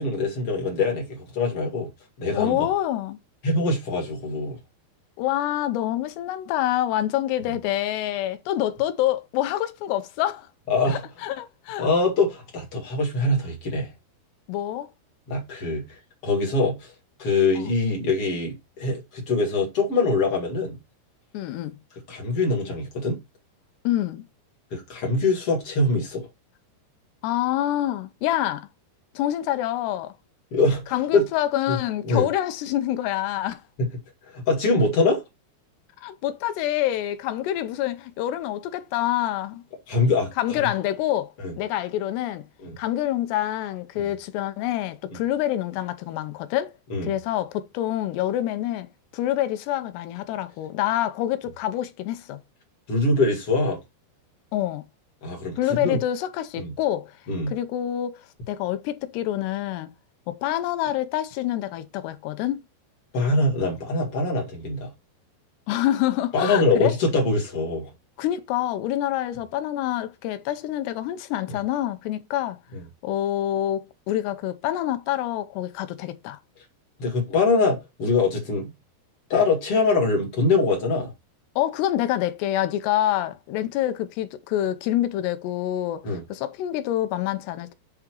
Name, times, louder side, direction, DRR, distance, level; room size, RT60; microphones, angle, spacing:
voice 1, 0.0-1.9 2.2-2.6 3.4-4.6 10.7-11.0 11.8-13.9 15.3-15.8 16.2-16.9 17.2-20.8 22.1-23.2 24.7-26.3 30.5-31.2 31.7-31.8 32.0-32.3 33.8-33.9 34.3-35.2 39.9-40.7 41.4-41.5 42.6-42.7 44.0-44.1 45.1-45.2 46.9-47.1 52.9-53.8 55.2-56.0 56.6-56.7 57.3-57.5 63.1-64.9 66.3-67.9 72.7-72.8 77.0-78.7 79.3-81.1 86.0-86.2, left 3 dB, 40° left, 2.4 m, -23 dB
voice 2, 2.4-3.2 5.2-10.5 10.9-11.9 14.5-14.9 17.6-17.7 21.3-21.8 23.8-24.2 27.2-28.7 29.2-30.1 30.9-33.6 36.0-39.6 40.4-42.5 42.8-46.7 47.0-48.9 49.1-52.4 54.5-54.8 55.6-57.2 57.5-58.2 58.5-59.9 60.3-62.6 65.7-67.0 68.2-72.6 73.0-76.4 81.6-87.7, left 13 dB, 85° left, 2.8 m, -26 dB
7.8 x 3.7 x 4.5 m
omnidirectional pair, 4.9 m